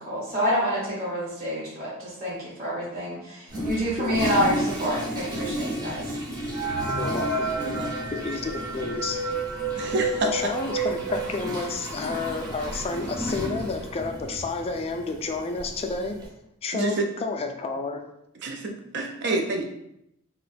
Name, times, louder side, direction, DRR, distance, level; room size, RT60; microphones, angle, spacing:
voice 1, 0.0-6.0, equal, 35° right, -9 dB, 1.0 m, -28 dB
Toilet flush, 3.5-16.3, equal, 20° right, 0.7 m, -34 dB
sound 1, 6.5-12.0 12.4-12.5 12.7-12.9 13.6-13.7 14.1-14.4, right 3 dB, 75° right, 1.0 m, -31 dB
voice 2, 7.0-7.5 8.1-9.2 10.3-16.2 16.6-18.0, left 4 dB, 30° left, 4 dB, 0.3 m, -30 dB
voice 3, 7.6-8.1 9.8-10.3 16.7-17.0 18.4-19.6, right 2 dB, 55° right, 4 dB, 0.5 m, -28 dB
2.5 x 2.2 x 4.0 m, 0.79 s
head